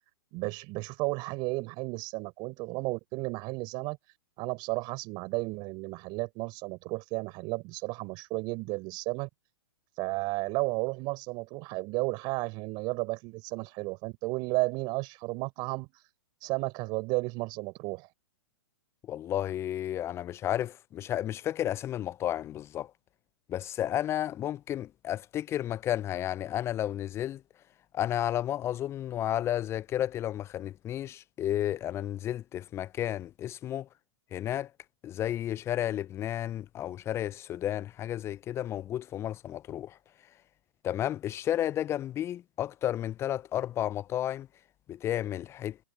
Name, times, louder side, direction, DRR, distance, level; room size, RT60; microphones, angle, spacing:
voice 1, 0.3-4.0 4.4-9.3 10.0-15.9 16.4-18.1, right 26 dB, 35° right, 4.3 m, -33 dB
voice 2, 19.0-22.9 23.5-27.4 27.9-33.9 34.3-34.7 35.0-40.0 40.8-44.5 44.9-45.8, left 11 dB, 20° left, 0.7 m, -32 dB
figure-of-eight pair, 120°, 13 cm